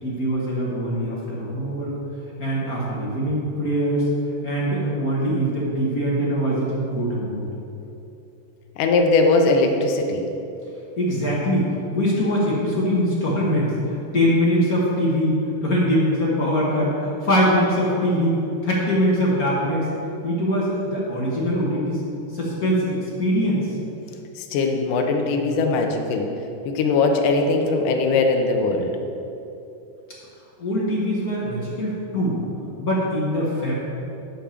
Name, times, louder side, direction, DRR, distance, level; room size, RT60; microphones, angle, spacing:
voice 1, 0.0-1.9 2.4-4.1 4.4-7.5 11.0-19.9 20.2-22.0 22.3-23.7 30.6-32.4 32.8-33.7, equal, 45° left, -6 dB, 1.1 m, -22 dB
voice 2, 8.8-10.3 24.4-26.3 26.7-29.0, left 3 dB, 80° left, 3 dB, 2.3 m, -20 dB
9.0 x 5.0 x 7.2 m, 2.8 s
omnidirectional pair, 3.7 m